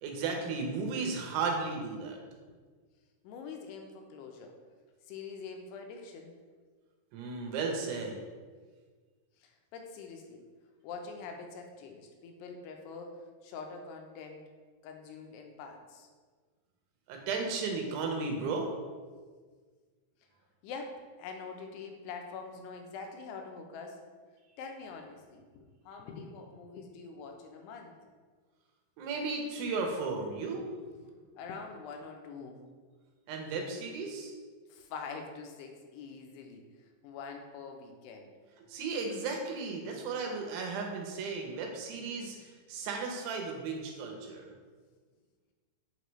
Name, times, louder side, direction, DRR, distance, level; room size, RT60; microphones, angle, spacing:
voice 1, 0.0-2.2 7.1-8.2 17.1-18.7 29.0-30.6 33.3-34.3 38.7-44.5, right 4 dB, 85° right, 2 dB, 3.0 m, -35 dB
voice 2, 3.2-4.6 5.1-6.3 9.4-10.5 10.8-14.4 14.8-16.1 20.6-24.0 24.6-28.0 31.4-32.6 34.7-38.3, left 5 dB, 85° left, 3 dB, 2.8 m, -45 dB
6.7 x 4.6 x 3.1 m, 1.5 s
omnidirectional pair, 4.7 m